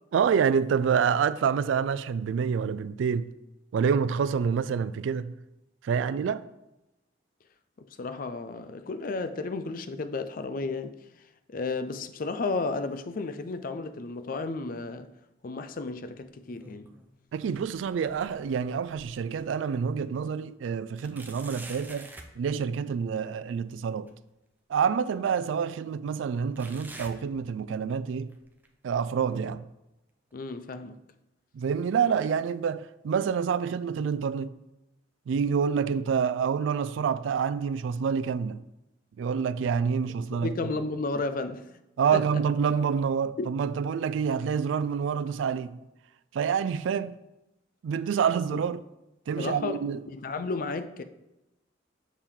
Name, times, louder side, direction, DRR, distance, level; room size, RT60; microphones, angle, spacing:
voice 1, 0.1-3.3 3.7-5.4 5.8-6.4 17.3-22.1 22.4-24.1 24.7-28.3 28.8-29.6 31.5-34.5 35.3-38.6 39.2-40.5 42.0-45.8 46.3-47.2 47.8-48.8 49.3-50.0, right 6 dB, 80° right, 0.3 m, -27 dB
voice 2, 7.8-11.0 11.5-15.1 15.4-16.9 30.3-31.0 40.3-41.7 42.1-42.3 43.4-43.5 48.5-48.6 49.4-51.0, left 3 dB, 45° left, 0.4 m, -33 dB
sound 1, 16.4-17.1 17.5-19.4 19.9-20.0 21.0-22.4 24.1-24.2 25.1-25.2 26.6-27.9 28.3-28.7 29.3-29.4 30.3-30.4, right 2 dB, 10° right, 0.5 m, -48 dB
6.9 x 4.5 x 3.6 m
head